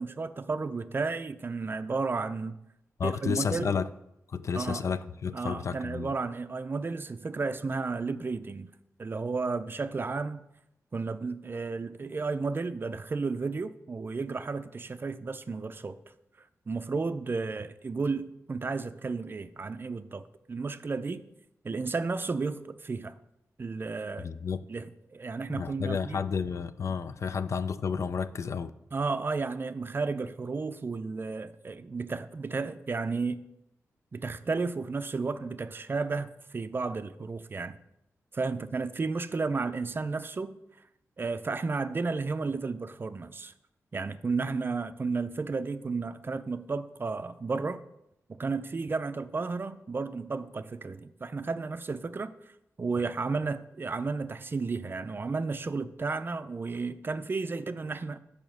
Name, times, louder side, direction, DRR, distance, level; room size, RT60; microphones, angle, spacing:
voice 1, 0.0-2.6 3.0-3.7 4.5-4.8 5.3-8.7 9.0-10.4 10.9-16.0 16.7-21.3 21.6-23.1 23.6-24.3 24.7-26.2 28.9-33.4 34.1-37.8 38.3-40.6 41.2-43.5 43.9-47.8 48.4-52.3 52.8-58.2, right 4 dB, 40° right, 0.4 m, -33 dB
voice 2, 3.0-3.9 4.3-6.1 24.2-24.7 25.5-28.7, left 6 dB, 60° left, 0.4 m, -31 dB
7.1 x 5.0 x 6.2 m
cardioid pair, 80°, 6 cm